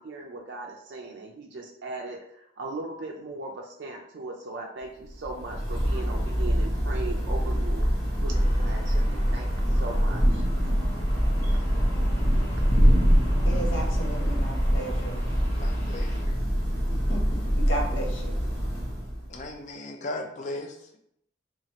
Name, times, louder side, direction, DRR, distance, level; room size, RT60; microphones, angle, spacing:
voice 1, 0.0-7.9 8.2-10.4 11.4-11.6, right 2 dB, 60° right, 0 dB, 0.4 m, -38 dB
Thunder / Rain, 5.1-19.4, equal, 10° left, 1.3 m, -24 dB
sound 1, 8.3-16.2, equal, 55° left, 1.0 m, -44 dB
voice 2, 13.4-15.2 16.9-17.2 17.5-18.3, right 1 dB, 80° left, -1 dB, 0.8 m, -34 dB
voice 3, 15.5-16.4 19.3-21.0, left 2 dB, 40° left, 3 dB, 0.4 m, -37 dB
2.9 x 2.4 x 2.9 m, 0.73 s
head